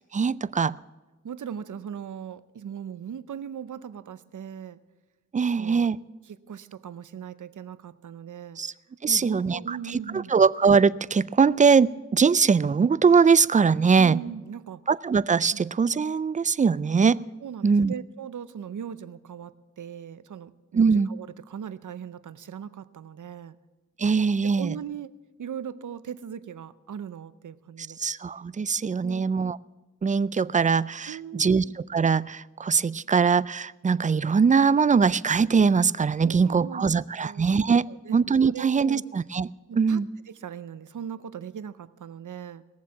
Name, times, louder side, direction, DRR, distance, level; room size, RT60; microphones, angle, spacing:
voice 1, 0.1-0.8 5.3-6.0 8.6-8.7 9.0-14.2 14.9-17.2 17.6-17.9 20.7-21.1 24.0-24.7 28.0-29.6 30.0-37.9 38.1-39.5 39.8-40.1, right 5 dB, 25° right, 19 dB, 0.3 m, -22 dB
voice 2, 1.2-4.8 5.6-5.9 6.3-8.6 9.1-10.3 14.0-14.8 15.5-15.6 17.4-23.6 24.4-25.1 25.4-28.0 29.0-29.3 31.1-31.7 36.2-38.2 38.4-39.0 39.7-40.0 40.3-42.6, right 8 dB, 80° right, 15 dB, 0.7 m, -39 dB
19.0 x 7.3 x 7.2 m, 1.2 s
cardioid pair, 65°, 30 cm